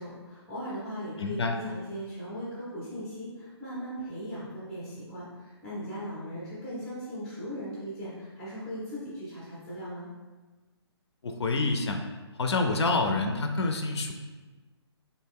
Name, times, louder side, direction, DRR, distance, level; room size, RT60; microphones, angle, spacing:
voice 1, 0.0-10.1, equal, 5° left, -8 dB, 0.4 m, -38 dB
voice 2, 1.2-1.6 11.2-12.0 12.4-14.1, left 3 dB, 70° left, 4 dB, 0.4 m, -27 dB
3.2 x 2.6 x 3.4 m, 1.3 s
hypercardioid pair, 170°, 14 cm